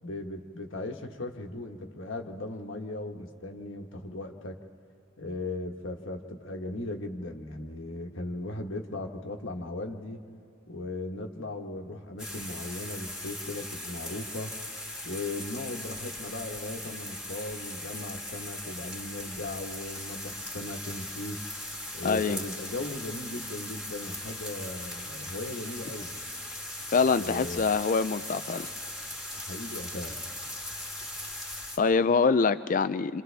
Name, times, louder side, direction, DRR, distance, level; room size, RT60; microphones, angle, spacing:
voice 1, 0.0-4.6 5.2-10.2 10.7-14.6 15.0-21.4 21.9-26.3 27.1-27.8 29.3-30.3, left 2 dB, 65° left, 3 dB, 1.3 m, -38 dB
sound 1, 12.2-31.8, left 1 dB, ahead, 2.3 m, -39 dB
voice 2, 22.0-22.4 26.9-28.7 31.8-33.2, left 5 dB, 40° left, 12 dB, 0.4 m, -25 dB
27.5 x 27.5 x 3.4 m, 2.7 s
head